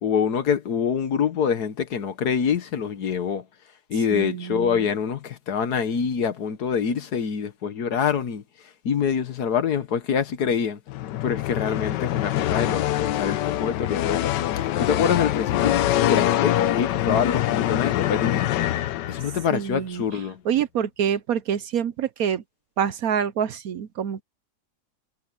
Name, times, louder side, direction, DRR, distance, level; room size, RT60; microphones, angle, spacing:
voice 1, 0.0-3.4 3.9-8.4 8.8-10.8 11.2-14.3 14.8-15.8 16.1-18.5 19.1-20.4, left 7 dB, 65° left, 1.7 m, -25 dB
voice 2, 4.1-4.9 19.5-20.2 20.4-22.4 22.8-24.2, right 8 dB, 65° right, 1.1 m, -26 dB
sound 1, 10.9-19.5, left 13 dB, 85° left, 1.3 m, -24 dB
omnidirectional pair, 1.8 m